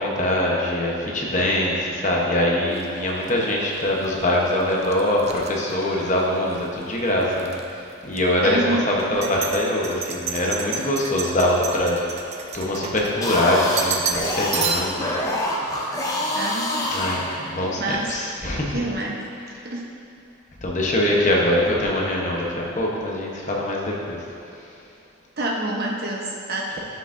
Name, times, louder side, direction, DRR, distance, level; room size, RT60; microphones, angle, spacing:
voice 1, 0.0-12.0 12.5-16.0 16.9-17.2 17.5-18.8 20.6-24.2 24.5-24.7, left 1 dB, 35° left, -2 dB, 1.0 m, -23 dB
sound 1, 2.7-6.7 7.0-7.6 8.1-8.2 9.0-13.4 13.8-14.3 14.5-15.1, right 6 dB, 30° right, 0.5 m, -31 dB
voice 2, 8.4-8.8 16.3-16.9 17.8-18.1 18.7-19.2 19.6-19.9 25.4-26.8, right 2 dB, 45° right, -2 dB, 1.0 m, -27 dB
sound 2, 13.1-17.8, left 1 dB, 15° left, 0.7 m, -26 dB
12.0 x 6.0 x 2.6 m, 2.7 s
head